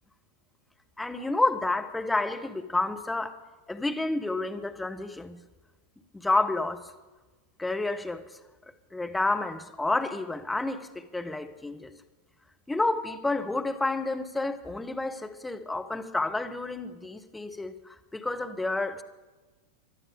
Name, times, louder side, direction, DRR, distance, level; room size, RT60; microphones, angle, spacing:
voice 1, 1.0-3.3 3.7-5.4 6.2-6.8 7.6-8.2 8.9-11.9 12.7-19.0, left 2 dB, 5° left, 6 dB, 1.1 m, -30 dB
21.0 x 11.5 x 5.1 m, 1.2 s
figure-of-eight pair, 90°, 0 cm